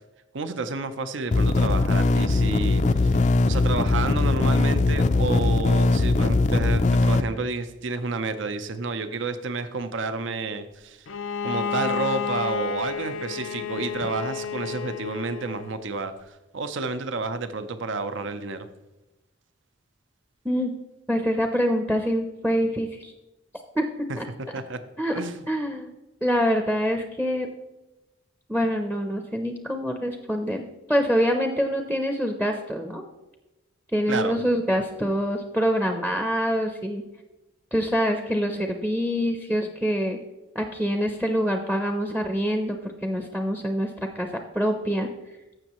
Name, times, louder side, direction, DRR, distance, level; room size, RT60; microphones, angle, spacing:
voice 1, 0.3-11.1 11.4-18.7 24.1-24.8 25.1-25.4 34.1-34.4, right 3 dB, 70° right, 10 dB, 0.7 m, -30 dB
sound 1, 1.3-7.2, left 2 dB, 35° left, 0.4 m, -20 dB
Bowed string instrument, 11.1-15.8, left 6 dB, 85° left, 0.7 m, -31 dB
voice 2, 21.1-23.1 23.8-23.9 24.2-24.3 25.0-25.1 25.5-25.9 26.2-27.5 28.5-30.6 30.9-33.0 33.9-37.0 37.7-40.2 40.5-44.3 44.5-45.1, equal, 5° right, 5 dB, 0.6 m, -25 dB
15.5 x 6.3 x 3.0 m, 1.1 s
head